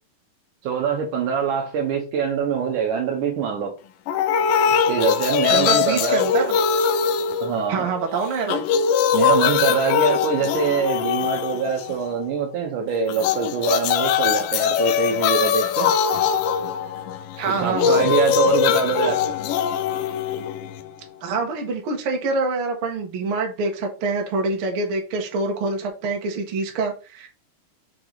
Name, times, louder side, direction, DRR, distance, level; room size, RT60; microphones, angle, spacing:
voice 1, 0.6-3.7 4.9-6.2 7.4-7.9 9.1-15.9 17.4-19.2, right 6 dB, 70° right, 2.2 m, -24 dB
sound 1, 4.1-8.0 8.3-12.1 13.1-21.1, left 8 dB, 80° left, 2.1 m, -22 dB
voice 2, 5.5-6.6 7.7-8.7 17.4-18.0 21.2-27.3, right 3 dB, 50° right, 1.7 m, -25 dB
5.9 x 4.8 x 4.0 m
omnidirectional pair, 4.3 m